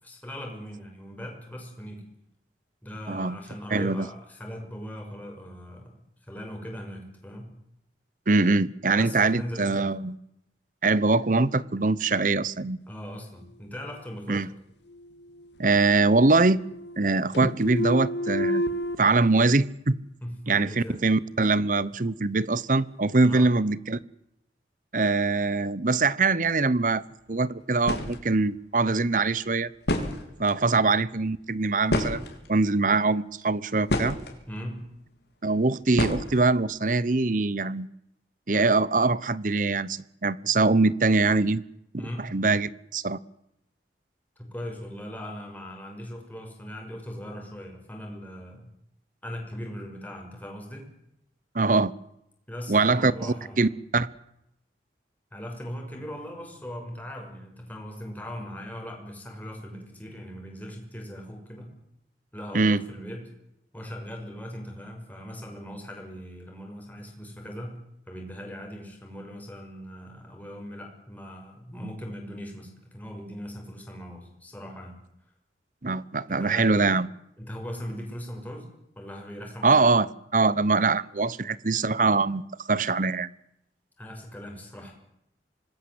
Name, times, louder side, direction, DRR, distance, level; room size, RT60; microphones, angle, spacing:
voice 1, 0.0-2.0 2.8-5.9 6.2-7.5 9.0-9.9 12.9-14.5 20.2-21.0 23.2-23.5 30.7-30.8 34.5-34.9 42.0-42.3 44.4-48.7 49.2-50.9 52.5-53.7 55.3-61.7 62.3-63.3 63.7-67.8 68.1-75.0 76.4-76.7 77.4-78.7 79.0-79.9 84.0-84.9, equal, 10° left, 1 dB, 6.0 m, -39 dB
voice 2, 3.1-3.4 3.7-4.1 8.3-10.2 10.8-12.8 14.3-14.5 15.6-16.6 17.0-18.6 19.0-20.0 20.5-24.0 24.9-27.0 27.3-29.7 30.4-32.2 32.5-34.2 35.4-37.9 38.5-41.6 41.9-43.2 51.5-51.9 52.7-54.1 62.5-62.8 75.8-77.1 79.6-80.1 80.3-83.3, right 3 dB, 45° right, 19 dB, 0.9 m, -23 dB
sound 1, 14.9-15.8 16.1-17.1 17.3-19.0, equal, 85° left, 2.1 m, -30 dB
sound 2, 27.5-27.6 27.8-28.2 29.4-29.5 29.8-30.6 31.9-32.7 33.4-34.4 36.0-36.6, left 1 dB, 70° left, 3.9 m, -28 dB
26.0 x 20.0 x 7.9 m, 0.82 s
head